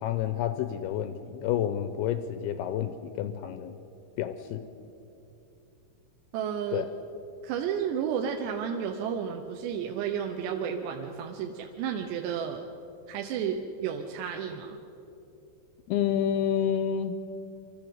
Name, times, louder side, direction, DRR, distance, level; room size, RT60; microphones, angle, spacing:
voice 1, 0.0-3.8 4.2-4.6 6.7-6.9 15.9-17.2, left 9 dB, 85° left, 10 dB, 2.3 m, -29 dB
voice 2, 6.3-6.9 7.4-12.7 13.1-14.8, right 8 dB, 75° right, 3 dB, 3.0 m, -32 dB
24.5 x 14.0 x 8.1 m, 2.9 s
omnidirectional pair, 5.2 m